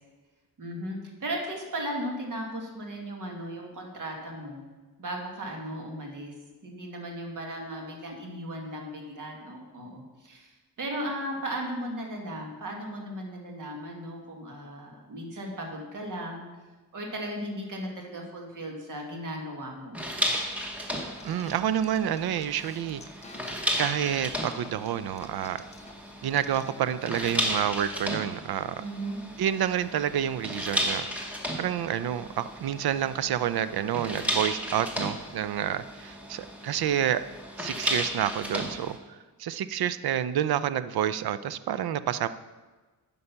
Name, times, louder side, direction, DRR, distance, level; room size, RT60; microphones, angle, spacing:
voice 1, 0.6-4.7 5.0-6.3 6.6-10.5 10.8-16.5 16.9-20.0 28.8-29.2, right 1 dB, 55° right, 1 dB, 1.8 m, -36 dB
sound 1, 19.9-39.0, equal, 5° right, 1.0 m, -34 dB
sound 2, 21.2-27.9, left 4 dB, 20° left, 0.5 m, -49 dB
voice 2, 21.2-23.0 23.8-25.6 26.2-28.7 29.4-31.1 31.6-37.2 37.6-39.0 39.4-42.3, right 10 dB, 90° right, 14 dB, 0.5 m, -28 dB
9.7 x 5.4 x 5.7 m, 1.3 s
wide cardioid pair, 175°, 36 cm